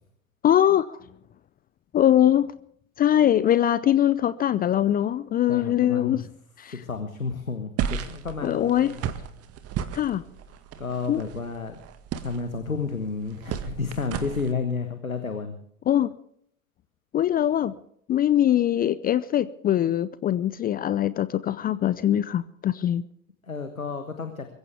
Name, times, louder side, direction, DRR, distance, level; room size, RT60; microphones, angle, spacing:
voice 1, 0.4-1.0 1.9-2.5 3.0-6.2 6.6-6.7 8.4-8.9 9.9-10.2 11.1-11.2 15.9-16.1 17.1-17.7 18.1-23.1, left 11 dB, 20° left, 17 dB, 0.5 m, -22 dB
voice 2, 5.5-6.2 6.7-9.1 10.8-11.8 12.2-15.6 23.4-24.5, left 4 dB, 90° left, 7 dB, 1.5 m, -31 dB
sound 1, 7.8-14.5, right 8 dB, 35° right, 1.9 m, -34 dB
23.0 x 15.5 x 3.5 m, 0.68 s
figure-of-eight pair, 80°, 40 cm